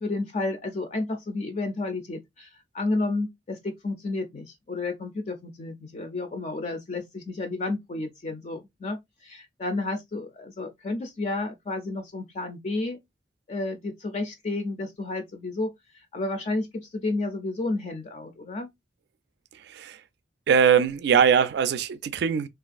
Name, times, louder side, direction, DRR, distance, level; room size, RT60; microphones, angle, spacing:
voice 1, 0.0-13.0 13.5-15.7 16.1-18.7, left 2 dB, 40° left, 0.4 m, -31 dB
voice 2, 19.5-20.0 20.5-22.5, right 7 dB, 65° right, 0.3 m, -21 dB
3.1 x 2.4 x 2.4 m
head